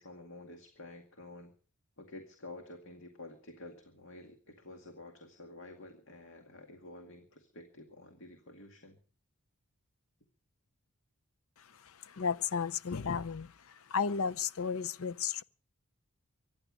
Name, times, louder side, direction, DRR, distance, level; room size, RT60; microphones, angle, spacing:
voice 1, 0.0-1.5 2.0-9.0, left 2 dB, 55° left, 2.2 m, -50 dB
voice 2, 12.0-13.5 13.9-15.4, left 6 dB, 75° left, 0.7 m, -33 dB
24.5 x 11.0 x 5.1 m
head